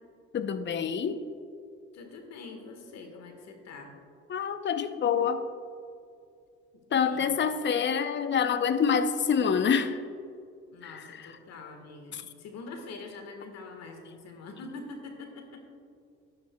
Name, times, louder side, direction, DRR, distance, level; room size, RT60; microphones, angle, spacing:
voice 1, 0.3-1.2 4.3-5.5 6.9-10.0 10.8-11.3 12.1-12.2, left 7 dB, 40° left, 10 dB, 0.7 m, -27 dB
voice 2, 1.9-3.9 6.9-7.3 10.7-15.6, left 3 dB, 60° left, 4 dB, 1.5 m, -44 dB
11.5 x 10.0 x 2.2 m, 2.4 s
supercardioid pair, 70°, 30 cm